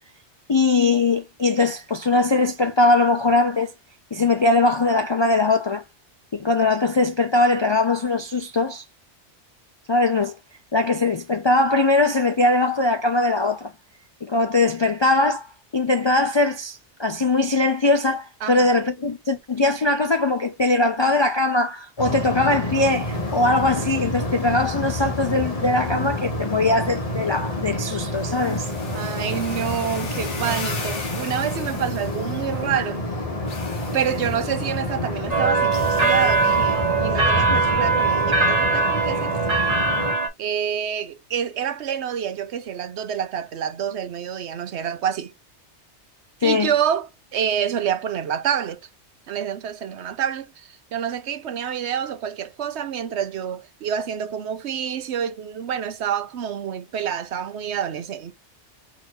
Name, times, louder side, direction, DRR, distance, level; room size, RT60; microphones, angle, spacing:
voice 1, 0.5-3.7 4.1-5.8 6.3-8.8 9.9-10.4 10.7-13.7 14.2-15.5 15.7-28.7 46.4-46.7, left 2 dB, 50° left, 0.3 m, -21 dB
sound 1, 22.0-40.1, left 1 dB, 30° left, 1.5 m, -28 dB
sound 2, 22.8-32.9 33.5-34.9 35.7-36.9, left 3 dB, 85° left, 1.8 m, -40 dB
voice 2, 28.9-33.0 33.9-39.4 40.4-45.3 46.4-48.8 49.3-58.3, right 8 dB, 75° right, 1.0 m, -27 dB
sound 3, 35.3-40.3, right 4 dB, 35° right, 1.5 m, -21 dB
4.5 x 4.1 x 2.5 m
omnidirectional pair, 1.2 m